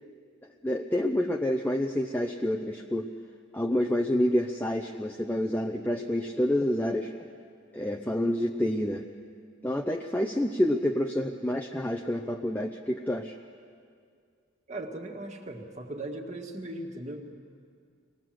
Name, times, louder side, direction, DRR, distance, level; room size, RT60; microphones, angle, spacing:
voice 1, 0.6-3.1 3.5-7.1 7.7-9.0 9.6-13.4, left 1 dB, 10° left, 2 dB, 0.7 m, -28 dB
voice 2, 14.7-17.3, right 1 dB, 35° right, 2 dB, 1.9 m, -38 dB
25.5 x 19.5 x 7.7 m, 2.2 s
head